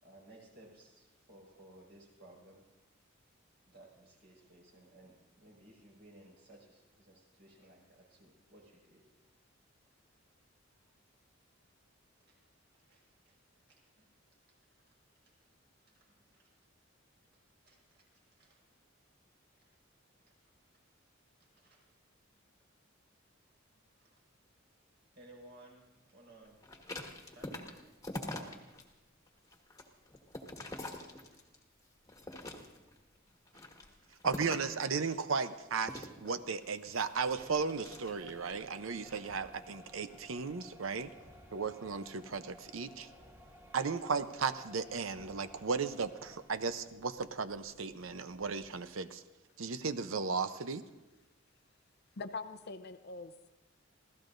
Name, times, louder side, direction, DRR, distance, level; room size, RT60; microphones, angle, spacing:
voice 1, 0.0-2.6 3.7-9.0 10.8-10.9 12.2-12.4 12.7-13.3 13.7-14.1 14.7-14.8 15.2-15.3 15.8-16.5 17.7-18.6 19.6-19.7 20.3-20.4 21.4-21.9 22.5-22.6 23.7-24.2 25.1-26.6 27.3-27.6 30.9-31.0, right 1 dB, 60° right, -2 dB, 5.4 m, -59 dB
sound 1, 26.6-28.8 29.3-31.6 32.1-33.0 33.5-34.8 35.8-38.5 39.0-39.3, left 1 dB, 15° left, 1.4 m, -45 dB
voice 2, 34.2-41.1 41.5-43.1 43.7-49.2 49.6-50.8, right 5 dB, 85° right, 11 dB, 0.7 m, -35 dB
sound 2, 37.2-49.0, equal, 15° right, 1.5 m, -57 dB
voice 3, 52.2-53.5, left 3 dB, 55° left, 9 dB, 0.7 m, -43 dB
26.0 x 16.5 x 2.6 m, 1.1 s
head